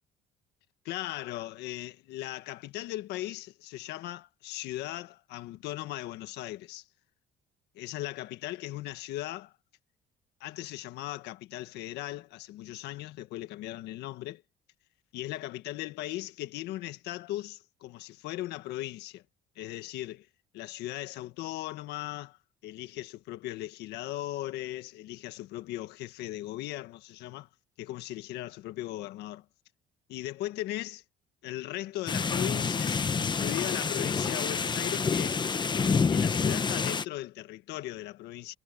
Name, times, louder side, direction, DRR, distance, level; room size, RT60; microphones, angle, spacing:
voice 1, 0.9-6.9 7.8-9.5 10.4-14.4 15.1-19.2 19.6-20.3 20.5-27.5 27.8-29.5 30.1-31.0 31.4-35.4 36.1-38.6, left 15 dB, 85° left, 1.6 m, -38 dB
sound 1, 32.1-37.1, left 5 dB, 25° left, 1.0 m, -28 dB
cardioid pair, 110°, 17 cm